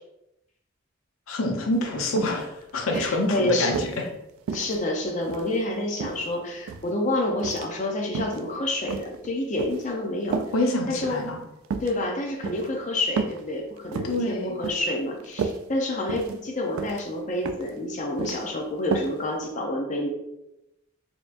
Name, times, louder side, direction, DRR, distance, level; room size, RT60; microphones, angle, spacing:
voice 1, 1.3-3.9 10.5-11.4 14.0-14.6, left 1 dB, 90° left, 2 dB, 0.7 m, -26 dB
sound 1, 1.7-1.8 2.2-2.4 2.9-4.0 4.5-5.6 6.0-6.9 7.4-7.7 8.1-8.4 8.9-9.9 10.3-10.5 11.0-11.2 11.6-11.9 12.4-12.7 13.2-13.4 13.8-14.2 14.6-14.9 15.2-15.6 16.1-16.4 16.8-17.0 17.4-17.7 18.0-18.4 18.9-19.1 19.5-19.6, right 5 dB, 90° right, 0.3 m, -31 dB
voice 2, 2.9-3.7 4.5-10.4 10.9-11.2 11.8-20.1, left 1 dB, 35° left, 0 dB, 0.5 m, -28 dB
4.3 x 2.8 x 2.5 m, 0.88 s
head